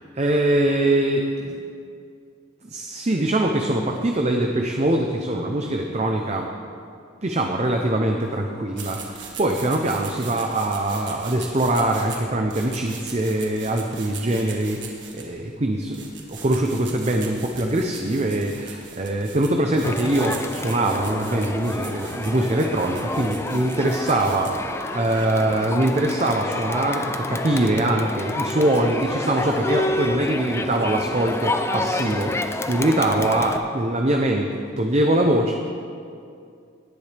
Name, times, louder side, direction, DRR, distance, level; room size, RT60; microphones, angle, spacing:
voice 1, 0.2-1.6 2.6-6.5 7.2-24.5 24.9-35.5, right 1 dB, 35° right, 2 dB, 0.7 m, -23 dB
sound 1, 8.7-25.4, right 5 dB, 65° right, 1.7 m, -40 dB
Crowd, 19.8-33.6, left 2 dB, 15° left, 0.4 m, -29 dB
19.0 x 10.5 x 3.4 m, 2.4 s
head